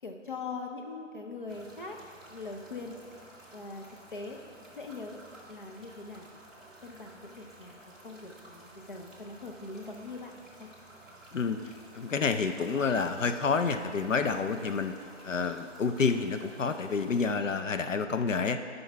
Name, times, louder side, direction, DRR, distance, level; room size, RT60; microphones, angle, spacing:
voice 1, 0.0-2.0 2.3-2.9 3.5-3.8 4.1-4.4 4.7-5.2 5.5-6.4 6.8-10.7, left 3 dB, 45° left, 2 dB, 0.7 m, -42 dB
sound 1, 1.5-17.2, right 1 dB, ahead, 0.6 m, -53 dB
voice 2, 12.0-14.9 15.2-18.6, left 5 dB, 90° left, 8 dB, 0.8 m, -29 dB
15.0 x 5.5 x 3.4 m, 2.2 s
figure-of-eight pair, 175°, 37 cm